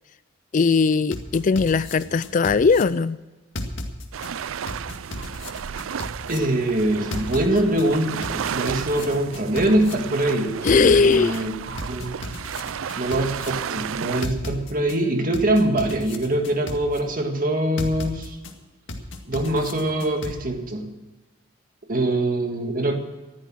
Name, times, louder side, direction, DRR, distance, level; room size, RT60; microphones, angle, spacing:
voice 1, 0.5-3.2 10.6-11.4, left 4 dB, 40° left, 17 dB, 0.4 m, -19 dB
sound 1, 1.1-2.8 3.6-4.3 4.7-6.4 7.1-7.8 8.2-9.9 10.7-11.4 11.8-13.5 14.2-15.0 15.3-17.0 17.8-18.5 18.9-20.3, left 1 dB, 60° left, 2.0 m, -33 dB
sound 2, 4.1-14.3, right 7 dB, 80° right, 0.5 m, -33 dB
voice 2, 6.3-12.2 13.0-18.4 19.3-20.9 21.9-23.0, right 1 dB, 45° right, 4 dB, 2.0 m, -23 dB
15.0 x 12.0 x 6.3 m, 1.2 s
head